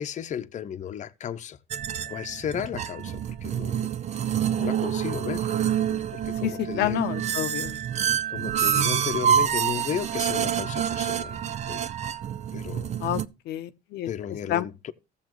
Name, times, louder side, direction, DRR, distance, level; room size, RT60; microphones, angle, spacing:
voice 1, 0.0-1.6 2.1-3.9 4.6-5.5 5.9-7.1 8.3-11.4 11.7-11.8 12.5-13.0 14.1-14.9, left 9 dB, 45° left, 0.8 m, -34 dB
sound 1, 1.7-13.3, right 9 dB, 40° right, 0.6 m, -27 dB
voice 2, 6.4-7.8 13.0-13.2 13.5-14.1 14.5-14.7, left 12 dB, 75° left, 0.7 m, -28 dB
15.0 x 7.2 x 3.0 m
cardioid pair, 110°, 17 cm